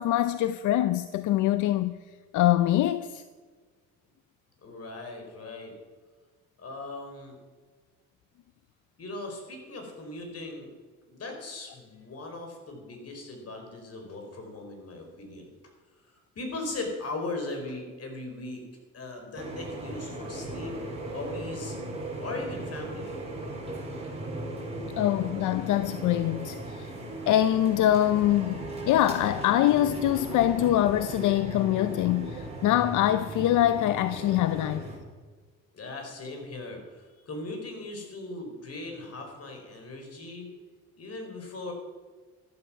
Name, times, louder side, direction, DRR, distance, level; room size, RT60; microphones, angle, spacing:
voice 1, 0.0-2.0 2.3-3.2 25.0-26.9 27.3-34.9, left 13 dB, 80° left, 0.6 m, -24 dB
voice 2, 4.6-5.7 6.6-7.4 9.0-10.7 11.1-15.5 16.0-18.6 18.9-20.7 21.1-21.8 22.2-23.2 35.7-40.5 41.0-41.7, left 2 dB, 55° left, 4.6 m, -39 dB
sound 1, 19.3-35.0, right 1 dB, 20° right, 4.9 m, -37 dB
13.5 x 12.5 x 5.9 m
cardioid pair, 90°, 30 cm